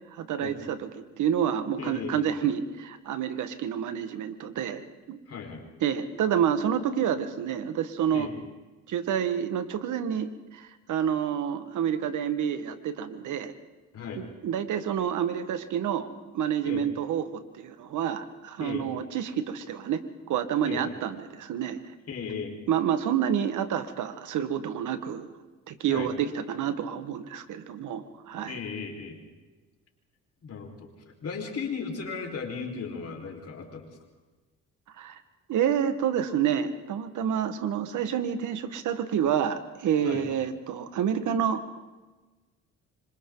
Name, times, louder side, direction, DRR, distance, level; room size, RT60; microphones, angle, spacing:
voice 1, 0.2-4.8 5.1-5.2 5.8-8.3 8.9-13.5 14.2-20.0 20.3-21.8 22.7-25.3 25.7-28.6 35.0-35.2 35.5-41.8, right 8 dB, 80° right, 10 dB, 1.7 m, -28 dB
voice 2, 1.8-2.3 5.3-5.6 8.1-8.3 13.9-14.2 16.6-16.8 18.6-18.9 20.6-20.8 22.1-22.6 25.9-26.1 28.3-29.2 30.4-34.0 40.0-40.3, left 5 dB, 55° left, 2 dB, 4.9 m, -36 dB
26.5 x 25.5 x 4.0 m, 1.2 s
cardioid pair, 90°, 30 cm